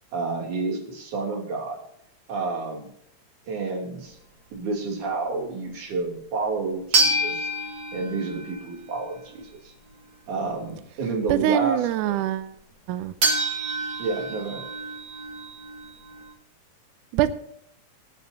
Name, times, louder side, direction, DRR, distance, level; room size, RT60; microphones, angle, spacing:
voice 1, 0.1-1.8 2.3-2.9 3.5-4.2 4.5-7.5 7.9-9.7 10.3-12.2 14.0-14.7, right 3 dB, 55° right, 1 dB, 4.2 m, -30 dB
sound 1, 6.9-8.9 13.2-16.3, right 2 dB, 40° right, 2.4 m, -27 dB
voice 2, 11.3-12.5 12.9-13.1 17.1-17.3, right 13 dB, 85° right, 12 dB, 1.8 m, -23 dB
24.5 x 9.5 x 2.8 m, 0.72 s
omnidirectional pair, 4.4 m